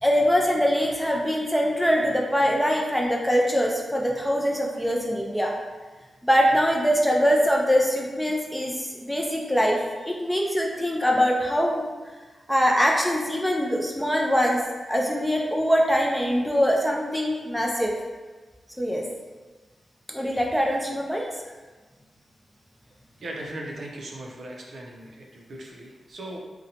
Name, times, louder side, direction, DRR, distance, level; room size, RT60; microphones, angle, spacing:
voice 1, 0.0-5.5 6.2-11.9 12.5-14.6 14.9-17.9 18.8-19.0 20.1-21.3, equal, 5° left, -1 dB, 0.4 m, -23 dB
voice 2, 23.2-26.4, right 1 dB, 65° right, -1 dB, 0.4 m, -38 dB
2.7 x 2.1 x 2.7 m, 1.3 s
cardioid pair, 80°, 0 cm